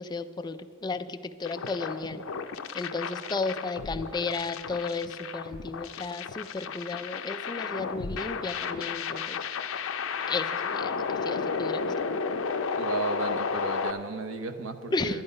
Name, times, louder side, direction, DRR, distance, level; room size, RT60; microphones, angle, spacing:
voice 1, 0.0-2.2 2.7-9.4 10.3-11.9 14.9-15.2, left 3 dB, 20° left, 9 dB, 0.4 m, -34 dB
sound 1, 1.4-13.9, left 5 dB, 80° left, 0.6 m, -33 dB
voice 2, 12.8-15.2, right 3 dB, 75° right, 6 dB, 0.9 m, -34 dB
11.0 x 10.5 x 5.3 m, 2.2 s
head